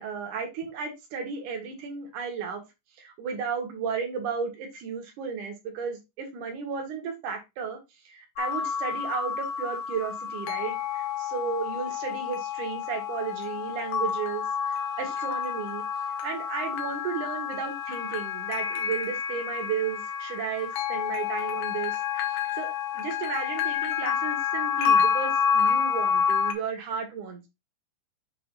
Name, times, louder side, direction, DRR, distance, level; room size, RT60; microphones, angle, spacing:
voice 1, 0.0-2.6 3.0-7.8 8.1-15.8 16.2-22.3 22.6-27.5, right 6 dB, 70° right, 2 dB, 3.0 m, -34 dB
sound 1, 8.4-26.5, left 7 dB, 85° left, 2.5 m, -29 dB
7.7 x 3.3 x 3.8 m, 0.23 s
omnidirectional pair, 3.7 m